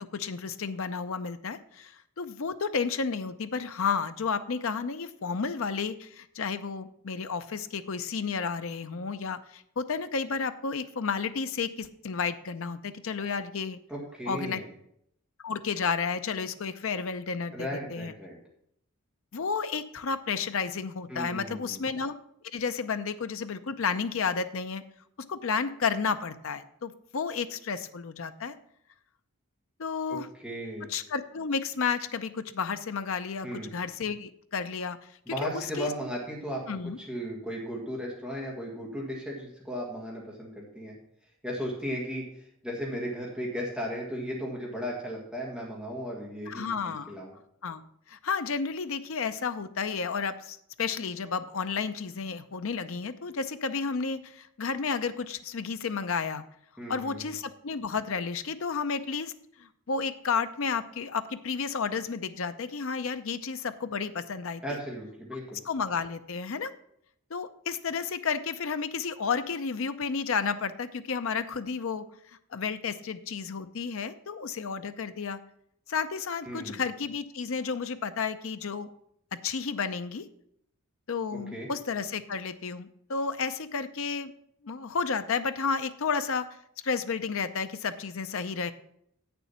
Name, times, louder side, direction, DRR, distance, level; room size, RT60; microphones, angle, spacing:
voice 1, 0.0-13.8 14.3-14.6 15.4-18.1 19.3-22.2 22.5-24.8 25.3-28.5 29.8-30.3 30.9-35.0 35.3-35.9 36.7-37.0 46.5-47.1 47.6-47.8 48.1-56.4 56.9-59.3 59.6-64.6 65.6-66.7 67.3-72.1 72.5-75.4 75.9-78.9 79.3-80.2 81.1-84.3 84.6-86.5 86.8-88.7, left 5 dB, 65° left, 10 dB, 0.6 m, -32 dB
voice 2, 13.9-14.7 17.5-18.4 21.1-21.8 30.1-30.9 33.4-33.7 35.3-40.9 41.4-47.3 56.8-57.3 64.6-65.6 76.4-76.8 81.3-81.7, equal, 5° right, -4 dB, 1.8 m, -36 dB
8.3 x 6.9 x 5.7 m, 0.72 s
head